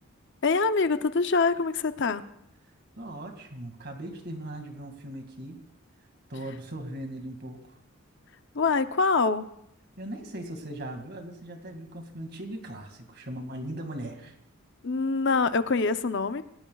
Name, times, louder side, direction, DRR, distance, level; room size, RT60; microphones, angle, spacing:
voice 1, 0.4-2.2 8.5-9.5 14.8-16.4, left 4 dB, 60° left, 11 dB, 0.7 m, -24 dB
voice 2, 3.0-5.6 6.3-7.8 10.0-14.3, right 1 dB, 50° right, 5 dB, 2.2 m, -39 dB
28.0 x 17.5 x 2.4 m, 0.75 s
head